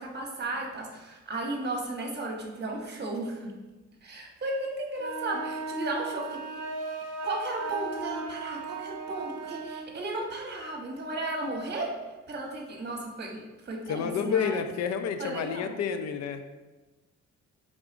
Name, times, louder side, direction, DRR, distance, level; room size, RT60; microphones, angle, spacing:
voice 1, 0.0-3.5 4.0-6.6 7.2-12.0 12.3-14.6 15.2-15.7, right 2 dB, 35° right, 0 dB, 1.0 m, -34 dB
sound 1, 5.0-9.9, right 3 dB, 55° right, 0.6 m, -37 dB
voice 2, 13.9-16.4, left 7 dB, 60° left, 8 dB, 0.5 m, -29 dB
4.8 x 3.5 x 2.5 m, 1.2 s
cardioid pair, 90°, 30 cm